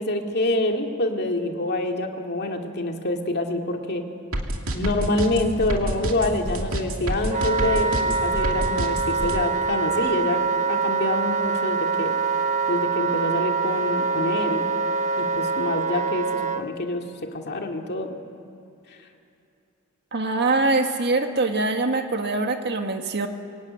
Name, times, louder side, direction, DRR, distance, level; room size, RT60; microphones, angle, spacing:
voice 1, 0.0-4.0 4.7-10.4 10.7-12.1 12.7-14.7 15.2-17.0 17.3-18.2, left 1 dB, 50° left, 3 dB, 2.3 m, -26 dB
sound 1, 4.3-9.4, right 1 dB, 65° right, 2.5 m, -27 dB
Wind instrument woodwind instrument, 7.3-16.6, right 4 dB, 35° right, 0.9 m, -24 dB
voice 2, 20.1-23.3, right 3 dB, 50° right, 5 dB, 1.7 m, -23 dB
24.0 x 22.5 x 9.6 m, 2.6 s
head